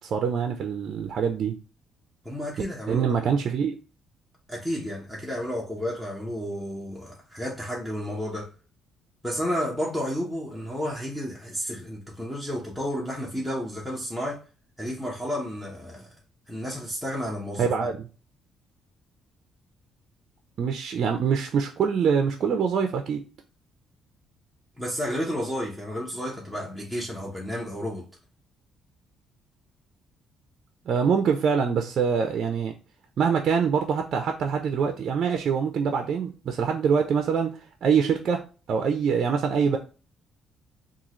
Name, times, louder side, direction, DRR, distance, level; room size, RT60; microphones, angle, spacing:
voice 1, 0.0-1.6 2.9-3.7 17.6-18.1 20.6-23.2 30.9-32.7 33.2-38.4 38.7-39.8, right 6 dB, 60° right, 0.5 m, -24 dB
voice 2, 2.2-3.3 4.5-8.5 9.2-14.4 14.8-16.1 16.5-17.7 24.8-28.1, equal, 5° left, 1.1 m, -31 dB
3.6 x 2.4 x 3.1 m
supercardioid pair, 75°, 0 cm